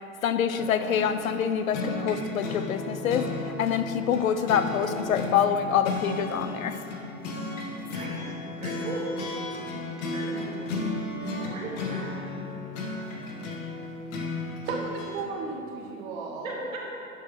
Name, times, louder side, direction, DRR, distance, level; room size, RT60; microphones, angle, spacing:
voice 1, 0.2-6.8, left 8 dB, 85° left, 10 dB, 0.5 m, -26 dB
sound 1, 0.6-15.2, left 2 dB, 60° left, 1.3 m, -34 dB
voice 2, 7.8-8.3 8.6-9.4 10.0-10.6 11.2-12.3 16.4-16.8, right 1 dB, 80° right, -3 dB, 1.6 m, -38 dB
voice 3, 14.7-16.6, right 4 dB, 55° right, -1 dB, 1.4 m, -34 dB
9.5 x 6.3 x 3.1 m, 2.8 s
figure-of-eight pair, 85°, 40 cm